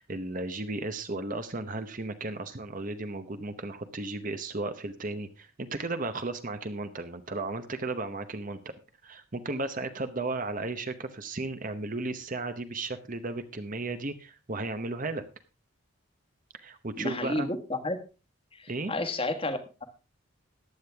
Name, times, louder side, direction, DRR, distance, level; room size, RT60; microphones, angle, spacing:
voice 1, 0.0-8.7 9.0-15.2 16.5-17.5 18.7-18.9, right 2 dB, 40° right, 9 dB, 0.9 m, -35 dB
voice 2, 17.0-18.0 18.5-19.8, left 2 dB, 25° left, 8 dB, 1.5 m, -31 dB
14.5 x 10.5 x 3.5 m, 0.31 s
head